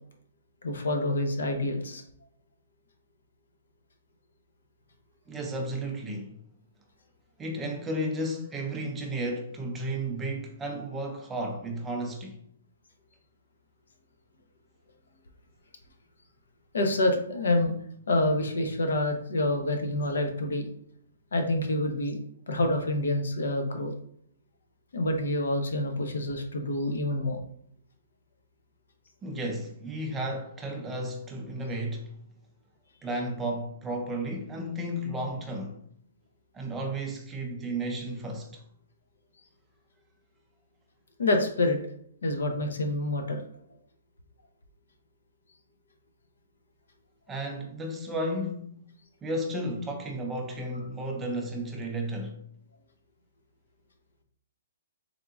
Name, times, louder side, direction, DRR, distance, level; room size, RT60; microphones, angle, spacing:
voice 1, 0.6-2.0 16.7-17.7 18.1-20.7 21.3-22.2 22.5-23.9 24.9-27.4 41.2-41.8 42.2-43.4, left 1 dB, 85° left, 0.8 m, -27 dB
voice 2, 5.3-6.3 7.4-12.4 29.2-32.1 33.0-35.8 36.5-38.6 47.3-48.7 49.2-52.4, right 1 dB, 5° right, 0.4 m, -33 dB
3.7 x 3.5 x 2.4 m
hypercardioid pair, 175°, 0 cm